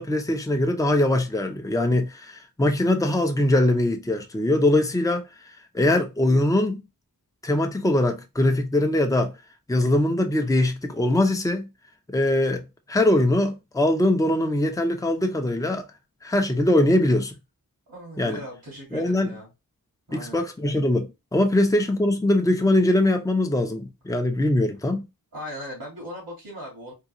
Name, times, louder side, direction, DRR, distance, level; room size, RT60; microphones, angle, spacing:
voice 1, 0.0-5.2 5.7-6.8 7.4-9.3 9.7-11.7 12.1-12.6 12.9-15.8 16.2-17.3 18.2-18.4 18.9-19.3 20.1-25.1, left 1 dB, 10° left, 0.6 m, -22 dB
voice 2, 17.9-19.5 20.1-20.4 25.3-26.9, equal, 85° right, 2.0 m, -38 dB
3.7 x 2.4 x 3.0 m
wide cardioid pair, 60°, 36 cm